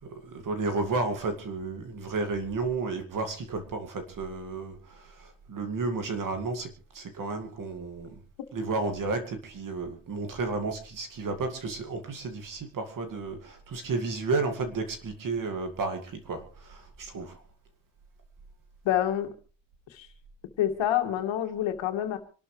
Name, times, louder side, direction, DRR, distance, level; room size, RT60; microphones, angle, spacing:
voice 1, 0.1-8.1 8.5-17.4, right 3 dB, 45° right, 6 dB, 2.3 m, -32 dB
voice 2, 18.8-19.3 19.9-20.1 20.6-22.2, left 11 dB, 85° left, 5 dB, 2.5 m, -27 dB
26.0 x 12.5 x 3.3 m, 0.37 s
cardioid pair, 170°, 45 cm